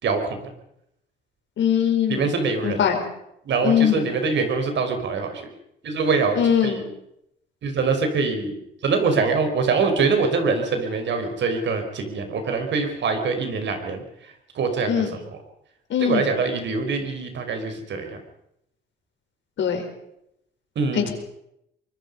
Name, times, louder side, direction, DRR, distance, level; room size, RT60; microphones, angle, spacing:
voice 1, 0.0-0.5 2.1-2.8 3.5-5.5 5.8-6.8 7.6-14.0 14.6-15.0 16.0-18.2 20.8-21.1, right 4 dB, 65° right, 6 dB, 5.1 m, -24 dB
voice 2, 1.6-2.3 2.6-3.0 3.6-4.0 6.4-6.8 14.9-15.1 15.9-16.3 19.6-19.8 20.9-21.1, left 8 dB, 70° left, 4 dB, 5.2 m, -21 dB
24.0 x 22.5 x 5.6 m, 0.80 s
cardioid pair, 90°, 20 cm